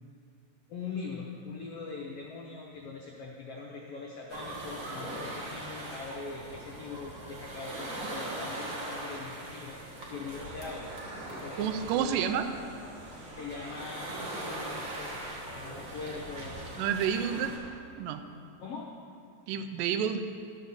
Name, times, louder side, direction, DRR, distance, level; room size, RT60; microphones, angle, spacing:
voice 1, 0.7-9.8 10.1-10.9 11.3-12.4 13.4-16.5 17.3-17.4 18.6-18.9, left 4 dB, 75° left, -1 dB, 1.4 m, -42 dB
sound 1, 4.3-17.6, right 1 dB, 45° right, 1.0 m, -40 dB
voice 2, 11.6-12.5 16.8-17.5 18.0-18.2 19.5-20.2, right 8 dB, 85° right, 9 dB, 2.3 m, -29 dB
12.0 x 5.4 x 7.0 m, 2.3 s
omnidirectional pair, 3.9 m